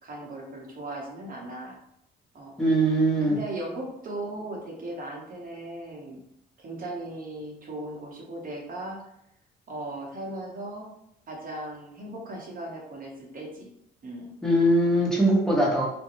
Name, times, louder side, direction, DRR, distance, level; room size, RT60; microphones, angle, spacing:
voice 1, 0.0-1.8 2.3-2.5 3.3-6.2 6.6-9.0 9.7-10.9 11.3-13.7 14.0-14.3, right 1 dB, 45° right, -2 dB, 0.9 m, -37 dB
voice 2, 2.6-3.4 14.4-15.9, right 1 dB, 5° left, -4 dB, 1.0 m, -21 dB
2.5 x 2.2 x 3.0 m, 0.79 s
cardioid pair, 90°, 20 cm